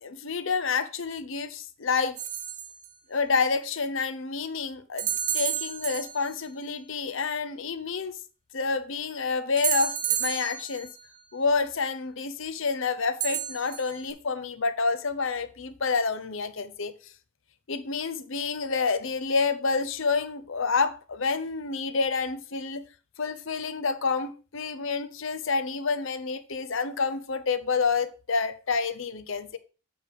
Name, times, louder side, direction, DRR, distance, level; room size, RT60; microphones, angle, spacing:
voice 1, 0.0-2.2 3.1-8.1 8.5-10.9 11.3-16.9 17.7-22.8 23.2-29.6, left 4 dB, 60° left, 0.7 m, -28 dB
sound 1, 2.2-2.9 5.0-6.5 9.6-11.1 13.2-14.1, right 10 dB, 35° right, 0.7 m, -31 dB
8.0 x 4.9 x 4.8 m
head